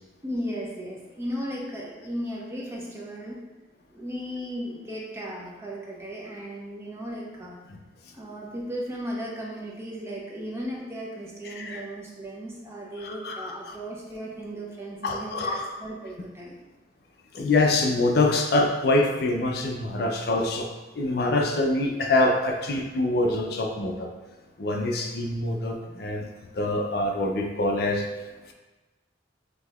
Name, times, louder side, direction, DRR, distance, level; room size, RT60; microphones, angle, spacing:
voice 1, 0.2-3.4 3.9-7.6 8.1-16.6, equal, 15° right, -3 dB, 0.5 m, -36 dB
voice 2, 13.0-13.8 15.0-15.7 17.3-20.7 21.0-24.1 24.6-26.3 26.5-28.1, left 2 dB, 55° left, 2 dB, 0.4 m, -25 dB
6.0 x 2.7 x 2.3 m, 1.2 s
head